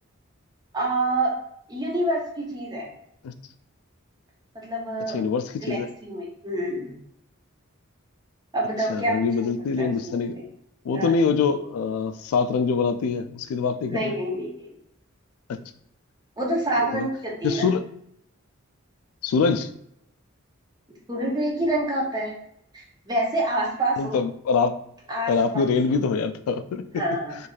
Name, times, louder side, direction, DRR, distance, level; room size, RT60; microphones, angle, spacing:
voice 1, 0.7-1.3 1.7-2.9 4.5-5.2 5.6-7.0 8.5-9.5 9.8-10.4 10.9-11.3 13.9-14.7 16.4-17.7 21.1-22.3 22.7-24.2 25.1-25.9 27.0-27.4, right 1 dB, 20° right, -2 dB, 0.6 m, -27 dB
voice 2, 5.1-5.9 8.9-10.4 10.8-14.1 15.5-15.6 16.8-17.1 17.4-17.8 19.2-19.7 24.0-24.8 25.3-27.0, left 5 dB, 90° left, 13 dB, 0.3 m, -24 dB
3.1 x 2.6 x 2.3 m, 0.73 s
head